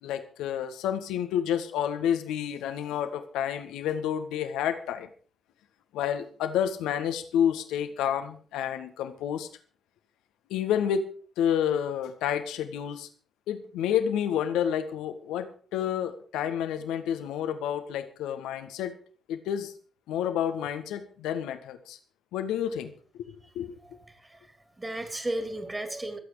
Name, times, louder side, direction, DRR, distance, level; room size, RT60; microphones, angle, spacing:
voice 1, 0.0-5.1 5.9-9.5 10.5-11.1 11.4-13.1 13.5-18.9 19.3-19.7 20.1-22.0 22.3-23.7, left 9 dB, 75° left, 9 dB, 1.7 m, -29 dB
voice 2, 23.8-24.5 24.8-26.2, right 1 dB, 25° right, 7 dB, 3.7 m, -34 dB
23.5 x 8.4 x 5.0 m, 0.42 s
hypercardioid pair, 40°, 0 cm